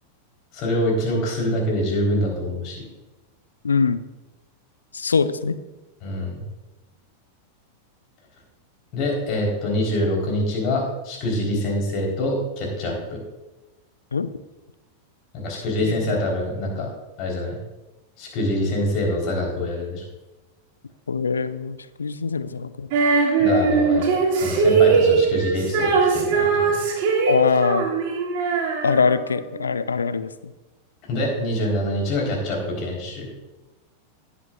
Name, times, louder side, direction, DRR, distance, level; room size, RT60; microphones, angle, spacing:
voice 1, 0.5-2.9 6.0-6.4 8.9-13.2 15.3-16.9 17.2-17.6 18.2-20.0 23.4-26.8 31.1-33.2, left 1 dB, 40° left, -1 dB, 4.0 m, -25 dB
voice 2, 3.6-4.0 4.9-5.6 14.1-14.3 15.8-15.9 21.1-22.9 27.3-27.9 28.8-30.3, left 5 dB, 75° left, 13 dB, 0.5 m, -22 dB
Female singing, 22.9-29.4, right 4 dB, 45° right, 2.6 m, -20 dB
18.0 x 8.2 x 2.5 m, 1.1 s
figure-of-eight pair, 90°, 0 cm